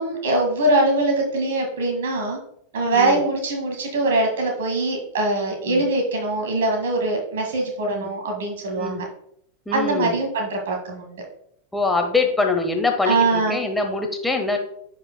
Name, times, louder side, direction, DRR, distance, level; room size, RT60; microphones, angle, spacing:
voice 1, 0.0-2.4 2.7-9.0 9.7-11.2 13.1-13.6, right 2 dB, 60° right, 2 dB, 1.9 m, -22 dB
voice 2, 2.8-3.2 5.6-5.8 7.9-8.1 8.8-9.0 9.7-10.2 11.7-14.6, left 3 dB, 5° left, 3 dB, 1.1 m, -24 dB
10.0 x 4.9 x 2.2 m, 0.70 s
figure-of-eight pair, 90°, 0 cm